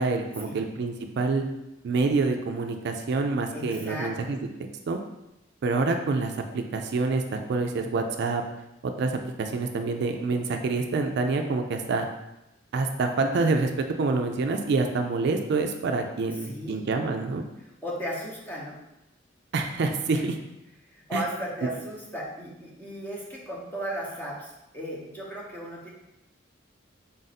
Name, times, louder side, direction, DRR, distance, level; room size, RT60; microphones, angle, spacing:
voice 1, 0.0-1.4 1.8-4.4 4.9-5.0 5.6-8.4 9.0-12.1 12.7-17.4 19.5-20.4 21.1-21.2, right 3 dB, 60° right, 5 dB, 0.4 m, -27 dB
voice 2, 3.5-4.4 16.4-16.8 17.8-18.8 20.1-20.3 20.9-25.9, equal, 10° left, -4 dB, 0.8 m, -35 dB
3.9 x 2.5 x 4.1 m, 0.92 s
head